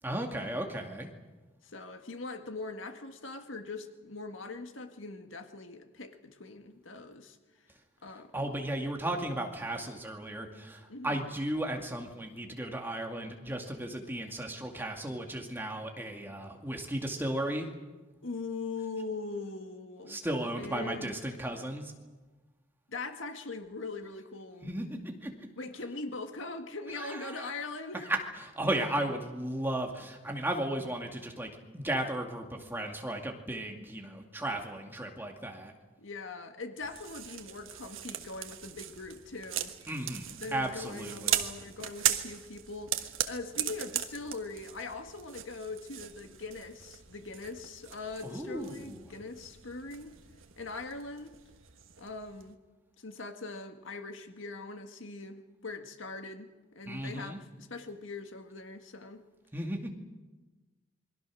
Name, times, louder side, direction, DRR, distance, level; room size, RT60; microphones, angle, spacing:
voice 1, 0.0-1.1 8.3-17.7 20.1-21.9 24.6-25.5 26.9-27.5 27.9-35.7 39.9-41.4 48.2-49.0 56.9-57.4 59.5-59.9, right 1 dB, 10° right, 2 dB, 2.3 m, -35 dB
voice 2, 1.6-7.4 8.0-8.3 10.9-11.2 18.2-20.2 20.6-21.2 22.9-24.7 25.6-28.1 36.0-39.7 40.4-50.1 50.6-51.3 52.0-52.6 53.0-57.5 57.7-59.3, left 3 dB, 75° left, 6 dB, 1.8 m, -41 dB
sound 1, 36.8-52.5, right 11 dB, 90° right, 1.4 m, -38 dB
27.5 x 22.5 x 6.3 m, 1.2 s
head